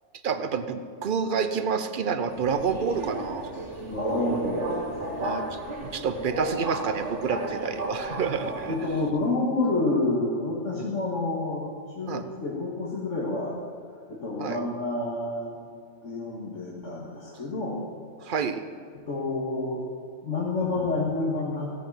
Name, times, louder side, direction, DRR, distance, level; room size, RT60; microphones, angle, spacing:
voice 1, 0.2-3.5 5.2-8.7 10.8-10.9 12.1-12.3 14.4-14.6 18.2-18.6, right 6 dB, 50° right, 10 dB, 0.8 m, -29 dB
Subway metro underground, 2.3-9.1, right 1 dB, 70° right, 2.0 m, -33 dB
voice 2, 3.9-4.9 8.7-11.7 12.0-13.6 14.1-15.6 16.0-17.8 19.1-19.8 20.2-21.7, left 2 dB, 85° left, -4 dB, 2.2 m, -28 dB
15.5 x 8.5 x 7.4 m, 2.1 s
omnidirectional pair, 1.2 m